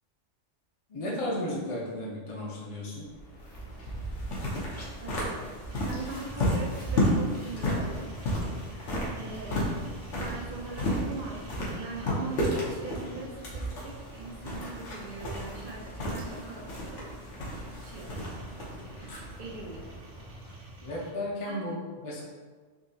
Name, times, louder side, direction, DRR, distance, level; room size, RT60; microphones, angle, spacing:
voice 1, 0.9-3.1 20.8-22.2, left 1 dB, 35° left, -5 dB, 0.5 m, -34 dB
sound 1, 3.1-20.7, equal, 70° left, 1.1 m, -33 dB
voice 2, 5.0-8.1 8.7-9.8 10.1-17.2 17.7-18.2 18.9-19.8 21.5-21.6, right 3 dB, 50° right, -3 dB, 0.7 m, -42 dB
sound 2, 5.7-21.1, right 1 dB, 65° right, 1.0 m, -48 dB
3.8 x 2.8 x 2.7 m, 1.4 s
omnidirectional pair, 1.3 m